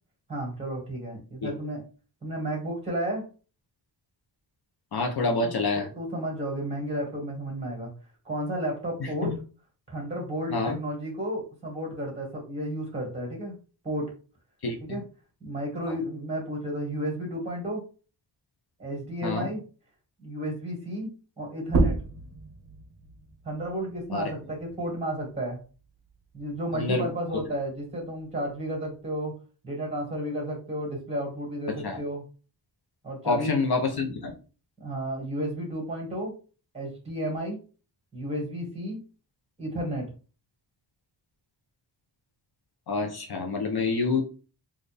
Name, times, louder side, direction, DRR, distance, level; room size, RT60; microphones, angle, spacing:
voice 1, 0.3-1.8 2.2-3.2 5.4-7.9 8.2-9.3 9.9-13.6 13.8-14.1 14.8-15.0 15.4-17.8 18.8-19.6 20.2-21.1 21.4-21.9 23.4-25.6 26.3-29.3 29.6-32.2 33.0-33.5 34.8-36.3 36.7-37.6 38.1-39.0 39.6-40.1, right 1 dB, 15° right, -1 dB, 1.7 m, -32 dB
voice 2, 4.9-5.9 9.0-9.3 10.5-10.8 14.6-14.8 15.9-16.0 19.2-19.5 24.1-24.3 26.7-27.4 31.8-32.0 33.2-34.3 42.9-44.2, left 3 dB, 60° left, 3 dB, 0.8 m, -27 dB
sound 1, 21.6-26.8 27.2-29.0, right 2 dB, 35° right, 0.7 m, -32 dB
4.1 x 2.5 x 3.4 m, 0.36 s
wide cardioid pair, 110°, 44 cm